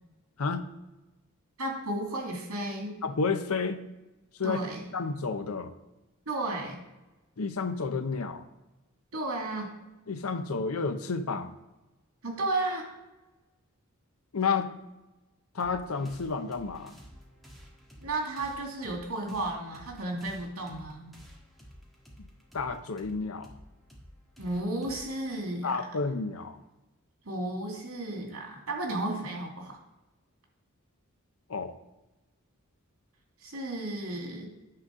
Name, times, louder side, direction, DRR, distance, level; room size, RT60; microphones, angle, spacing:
voice 1, 0.4-0.7 3.0-3.8 4.4-4.6 4.9-5.7 7.4-8.4 10.1-11.6 14.3-14.7 15.5-17.0 22.2-22.3 22.5-23.5 25.6-26.6 31.5-31.7, left 4 dB, 75° left, 9 dB, 0.7 m, -31 dB
voice 2, 1.6-3.0 4.4-4.8 6.3-6.8 9.1-9.7 12.2-12.9 18.0-21.1 24.4-25.8 27.2-29.8 33.4-34.5, right 2 dB, 80° right, 0 dB, 2.4 m, -33 dB
sound 1, 15.6-26.7, equal, ahead, 1.7 m, -53 dB
9.9 x 4.0 x 6.3 m, 1.0 s
head